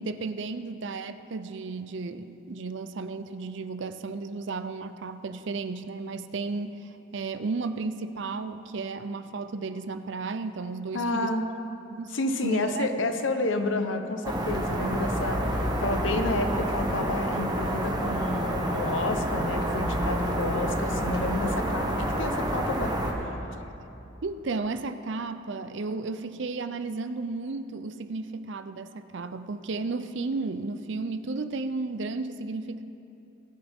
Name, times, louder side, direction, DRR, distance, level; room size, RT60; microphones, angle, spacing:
voice 1, 0.0-11.3 11.9-12.1 12.4-12.9 24.0-32.8, right 3 dB, 65° right, 11 dB, 0.5 m, -33 dB
voice 2, 10.9-11.4 12.1-22.9 23.2-23.5, left 2 dB, 70° left, 6 dB, 0.9 m, -30 dB
sound 1, 14.2-23.1, right 1 dB, 20° right, 1.1 m, -28 dB
18.5 x 10.5 x 3.6 m, 2.8 s
head